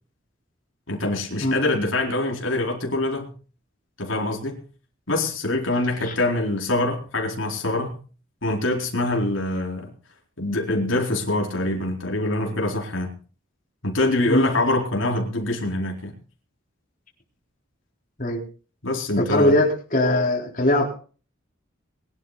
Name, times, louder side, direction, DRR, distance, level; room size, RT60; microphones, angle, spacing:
voice 1, 0.9-3.3 4.0-4.6 5.1-8.0 8.4-9.9 10.4-13.1 13.8-16.1 18.8-19.6, left 2 dB, 80° left, 0 dB, 4.3 m, -24 dB
voice 2, 19.2-21.0, left 1 dB, 40° left, -1 dB, 4.1 m, -21 dB
22.5 x 12.0 x 4.1 m, 0.39 s
head